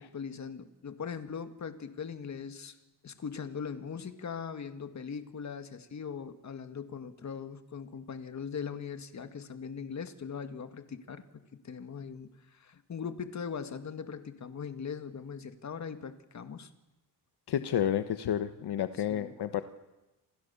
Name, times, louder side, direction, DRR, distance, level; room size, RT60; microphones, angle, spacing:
voice 1, 0.0-2.8 3.0-16.7 19.1-19.3, left 6 dB, 40° left, 9 dB, 2.1 m, -40 dB
voice 2, 17.5-19.6, left 10 dB, 70° left, 10 dB, 1.3 m, -30 dB
28.5 x 28.0 x 7.1 m, 1.0 s
wide cardioid pair, 160°, 41 cm